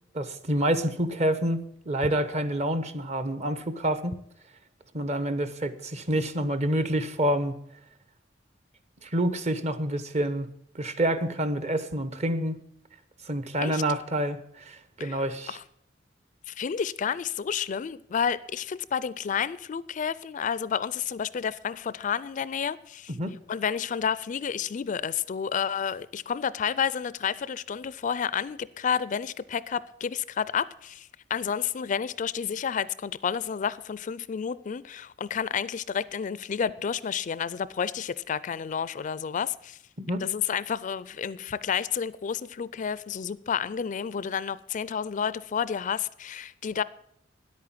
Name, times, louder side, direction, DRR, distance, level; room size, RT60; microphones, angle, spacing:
voice 1, 0.1-4.2 4.9-7.5 9.0-10.5 10.7-12.6 13.3-15.6 23.2-23.4 40.0-40.2, right 1 dB, 40° right, 0.9 m, -28 dB
voice 2, 16.5-23.1 23.5-39.8 40.2-46.8, left 7 dB, 45° left, 0.4 m, -30 dB
10.5 x 8.6 x 7.4 m
head